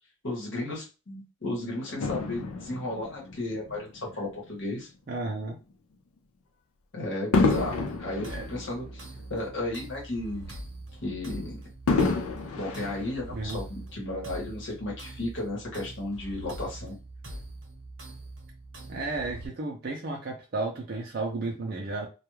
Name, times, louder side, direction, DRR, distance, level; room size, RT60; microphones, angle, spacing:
voice 1, 0.2-4.9 6.9-10.6 11.0-11.6 12.5-16.9, left 2 dB, 55° left, -3 dB, 1.0 m, -34 dB
Fireworks, 2.0-4.6 5.2-5.4 7.3-9.8 10.2-10.3 11.9-13.7 14.5-14.6, left 3 dB, 90° left, 0.4 m, -29 dB
voice 2, 5.1-5.6 8.3-8.5 13.3-13.6 18.9-22.1, right 3 dB, 45° right, -1 dB, 0.4 m, -33 dB
sound 1, 7.5-19.5, right 1 dB, 70° right, 0.8 m, -43 dB
2.3 x 2.2 x 3.1 m, 0.31 s
head